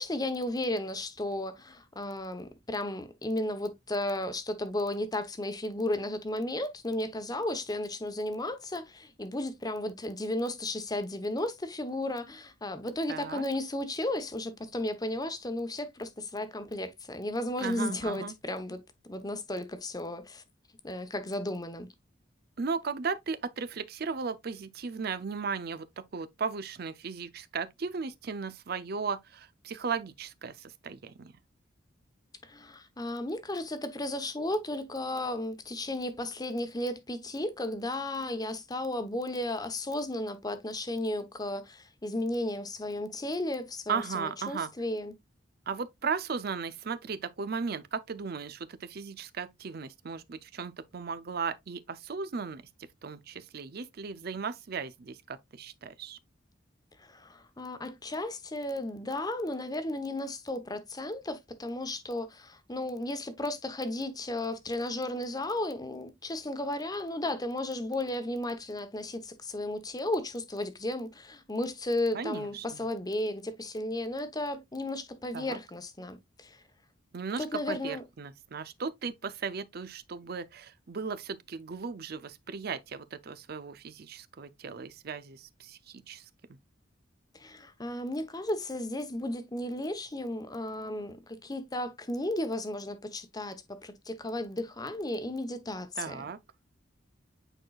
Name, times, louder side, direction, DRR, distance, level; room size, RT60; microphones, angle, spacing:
voice 1, 0.0-18.8 19.1-20.4 20.8-21.9 32.4-45.2 57.0-76.6 77.4-78.0 87.3-96.2, left 1 dB, 20° left, 0.9 m, -34 dB
voice 2, 13.1-13.4 17.6-18.3 22.6-31.3 43.9-44.7 45.7-52.6 53.0-56.2 72.1-72.7 75.3-75.6 77.1-86.3 96.0-96.4, right 5 dB, 55° right, 0.5 m, -36 dB
8.8 x 4.6 x 2.3 m
head